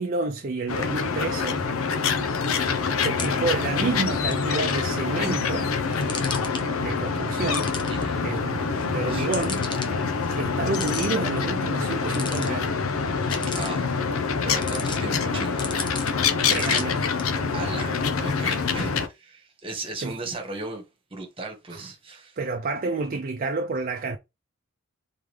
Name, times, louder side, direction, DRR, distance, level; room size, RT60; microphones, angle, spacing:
voice 1, 0.0-1.6 2.7-5.7 6.8-7.7 8.2-9.6 9.9-12.9 16.5-17.0 20.0-20.1 21.7-21.9 22.4-24.2, right 3 dB, 45° right, 0.5 m, -29 dB
sound 1, 0.7-19.1, left 5 dB, 90° left, 0.7 m, -26 dB
sound 2, 2.5-17.2, left 4 dB, 25° left, 0.7 m, -40 dB
voice 2, 7.9-8.2 9.1-9.3 13.5-13.9 14.4-15.7 17.5-20.8 21.1-22.3, right 3 dB, 25° right, 1.4 m, -36 dB
3.9 x 3.6 x 3.2 m
head